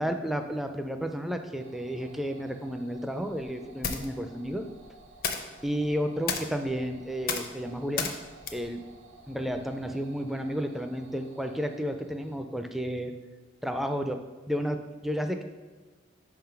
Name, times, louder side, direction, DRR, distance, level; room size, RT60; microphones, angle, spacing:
voice 1, 0.0-4.6 5.6-8.1 8.5-8.8 9.3-13.1 13.6-14.2 14.5-15.4, equal, ahead, 6 dB, 0.3 m, -32 dB
sound 1, 1.6-12.4, right 3 dB, 90° right, 0.8 m, -55 dB
sound 2, 3.5-9.9, left 5 dB, 50° left, 0.6 m, -37 dB
5.3 x 3.8 x 5.7 m, 1.3 s
head